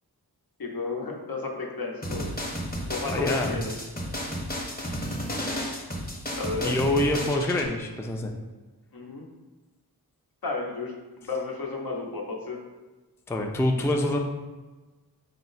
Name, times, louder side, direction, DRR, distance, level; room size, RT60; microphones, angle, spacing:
voice 1, 0.6-2.3 2.9-3.7 6.4-6.7 8.9-9.3 10.4-12.6, left 3 dB, 65° left, 0 dB, 0.8 m, -32 dB
sound 1, 2.0-7.7, equal, 25° left, 0.8 m, -32 dB
voice 2, 3.1-3.7 6.6-8.3 13.3-14.2, left 1 dB, 5° left, 2 dB, 0.3 m, -26 dB
4.4 x 2.1 x 3.9 m, 1.2 s
wide cardioid pair, 50°, 38 cm